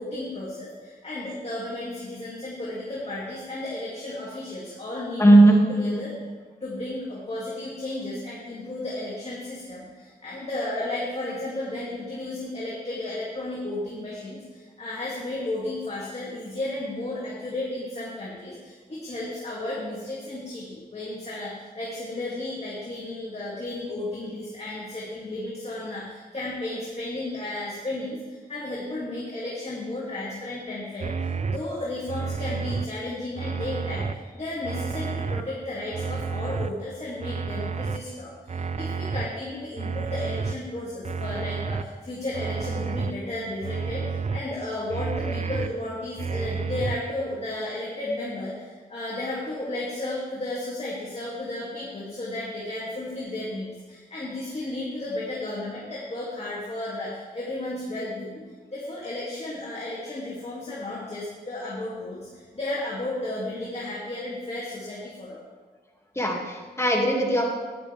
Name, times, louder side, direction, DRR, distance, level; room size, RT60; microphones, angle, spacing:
voice 1, 0.0-6.1 6.6-58.4 58.7-65.4, left 1 dB, 35° left, -6 dB, 2.5 m, -33 dB
voice 2, 5.2-6.0 66.2-67.5, right 1 dB, 15° left, 0 dB, 2.2 m, -18 dB
sound 1, 31.0-31.6 32.1-32.9 33.4-34.1 34.6-35.4 35.9-36.7 37.2-38.0 38.5-39.3 39.8-40.5 41.0-41.8 42.3-43.1 43.6-44.4 44.9-45.7 46.2-47.0, right 5 dB, 40° right, 0.5 m, -30 dB
12.0 x 10.0 x 3.4 m, 1.4 s
cardioid pair, 60°, 18 cm